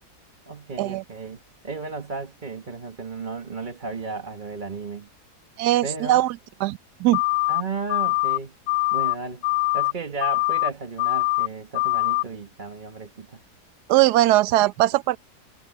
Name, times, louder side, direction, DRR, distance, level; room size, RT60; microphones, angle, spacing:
voice 1, 0.5-1.4 1.6-5.1 5.8-6.2 7.5-8.5 8.9-9.4 9.7-13.4, right 4 dB, 30° right, 1.4 m, -34 dB
voice 2, 5.6-6.3 6.6-7.2 13.9-15.2, right 15 dB, 85° right, 1.2 m, -20 dB
sound 1, 7.1-7.6 7.9-8.4 8.7-9.1 9.4-9.9 10.2-10.7 11.0-11.5 11.7-12.2, left 22 dB, 65° left, 0.9 m, -23 dB
omnidirectional pair, 1.7 m